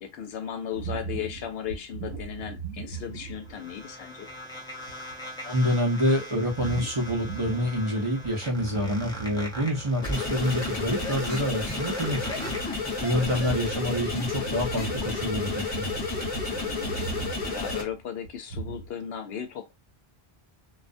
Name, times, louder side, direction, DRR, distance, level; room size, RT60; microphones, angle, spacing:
voice 1, 0.0-4.3 13.2-13.5 16.5-17.0 17.5-19.7, left 8 dB, 75° left, 0.8 m, -36 dB
sound 1, 0.7-3.8 4.3-4.4 4.8-5.1 6.6-7.9 8.2-10.0 10.3-18.9, right 4 dB, 85° right, 0.9 m, -39 dB
sound 2, 2.9-13.4, equal, 5° left, 0.5 m, -41 dB
voice 2, 5.4-12.5 13.0-15.9, equal, 35° right, 0.6 m, -27 dB
sound 3, 10.0-17.8, left 3 dB, 30° left, 0.9 m, -31 dB
2.3 x 2.0 x 2.5 m
omnidirectional pair, 1.1 m